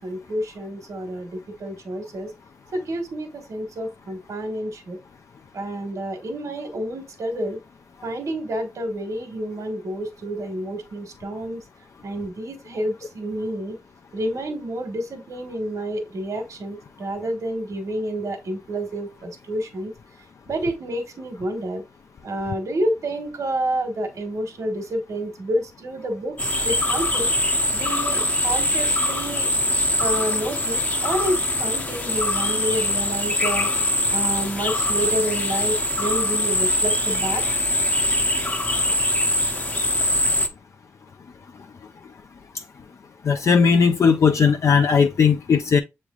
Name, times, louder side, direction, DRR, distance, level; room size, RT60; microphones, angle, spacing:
voice 1, 0.0-2.3 2.7-5.0 5.5-7.6 8.0-11.6 12.0-13.8 14.1-19.9 20.5-21.8 22.2-27.3 27.7-29.5 30.0-33.7 34.1-37.4, right 1 dB, 70° right, 1.4 m, -29 dB
sound 1, 26.4-40.5, left 1 dB, 30° left, 0.7 m, -23 dB
voice 2, 43.3-45.8, left 6 dB, 60° left, 0.5 m, -17 dB
7.0 x 3.2 x 2.4 m
wide cardioid pair, 100°, 6 cm